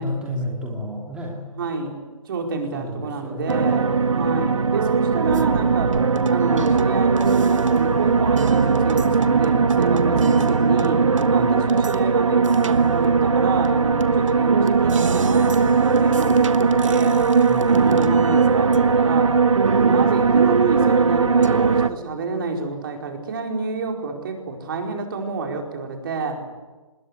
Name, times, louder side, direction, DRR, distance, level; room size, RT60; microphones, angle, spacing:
voice 1, 0.0-1.4 2.7-3.8 11.4-11.5 17.5-17.7, left 1 dB, 5° right, -3 dB, 2.9 m, -31 dB
voice 2, 1.5-2.0 2.2-6.0 6.3-11.0 11.3-17.2 17.6-26.4, right 4 dB, 40° right, 2 dB, 4.8 m, -28 dB
sound 1, 3.5-21.9, right 5 dB, 65° right, 1.4 m, -19 dB
27.5 x 21.0 x 8.1 m, 1.2 s
figure-of-eight pair, 140°, 18 cm